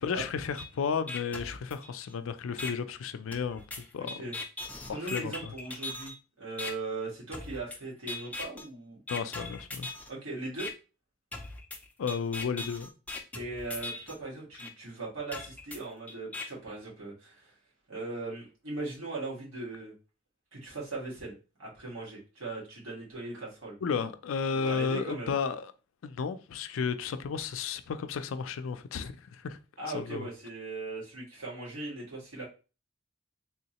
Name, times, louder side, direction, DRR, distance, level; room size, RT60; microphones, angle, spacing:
voice 1, 0.0-4.2 4.9-5.5 9.1-9.9 12.0-12.9 23.8-25.7 26.0-29.6 29.9-30.3, left 6 dB, 80° left, 0.4 m, -33 dB
sound 1, 0.6-0.7 1.1-2.1 2.6-2.7 3.3-6.1 6.6-6.7 7.3-7.8 8.1-8.6 9.1-10.1 10.6-10.7 11.3-14.1 14.6-14.7 15.3-16.4, left 3 dB, 5° left, 0.4 m, -39 dB
voice 2, 4.8-9.0 10.1-10.7 13.3-17.5 17.9-19.9 20.5-23.8 24.5-25.3 29.8-32.5, right 3 dB, 90° right, 1.8 m, -39 dB
3.5 x 3.1 x 2.8 m
head